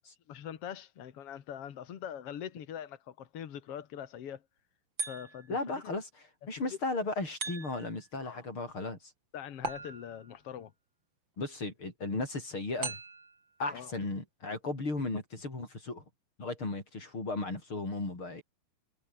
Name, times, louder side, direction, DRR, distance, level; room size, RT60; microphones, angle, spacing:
voice 1, 0.3-4.4 5.0-5.9 8.2-8.5 9.3-10.7 13.7-13.9, left 9 dB, 60° left, 1.5 m, -43 dB
sound 1, 5.0-5.6 7.4-8.0 9.6-10.4 12.8-13.4, right 4 dB, 30° right, 3.7 m, -39 dB
voice 2, 5.5-9.1 11.4-13.0 13.6-16.0 16.4-18.4, left 3 dB, 25° left, 7.8 m, -35 dB
omnidirectional pair, 5.1 m